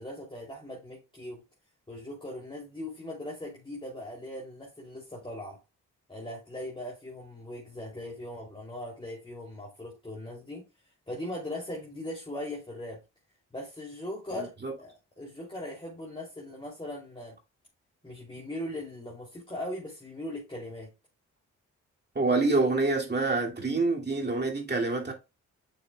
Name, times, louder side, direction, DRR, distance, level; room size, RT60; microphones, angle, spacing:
voice 1, 0.0-1.4 1.9-5.6 6.1-10.6 11.1-13.0 13.5-17.4 18.0-20.9, left 1 dB, 15° left, 2.8 m, -39 dB
voice 2, 22.2-25.1, right 3 dB, 30° right, 2.3 m, -26 dB
6.7 x 6.5 x 2.2 m
supercardioid pair, 45°, 34 cm